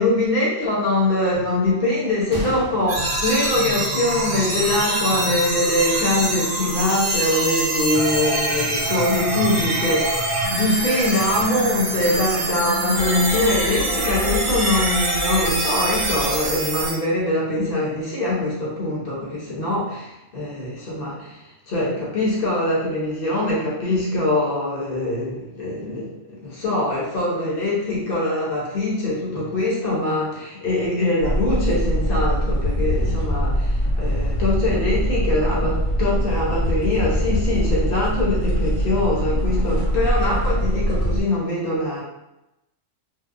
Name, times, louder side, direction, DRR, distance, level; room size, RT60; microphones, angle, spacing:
voice 1, 0.0-42.0, left 1 dB, 50° left, -5 dB, 0.8 m, -23 dB
Gunshot gunfire, 2.3-4.3 4.6-4.7 5.4-5.6, equal, 50° right, 0.7 m, -35 dB
sound 1, 2.9-16.9, right 1 dB, 85° right, 1.0 m, -24 dB
sound 2, 31.2-41.2, equal, 90° left, 1.2 m, -22 dB
2.7 x 2.0 x 2.3 m, 0.91 s
omnidirectional pair, 1.3 m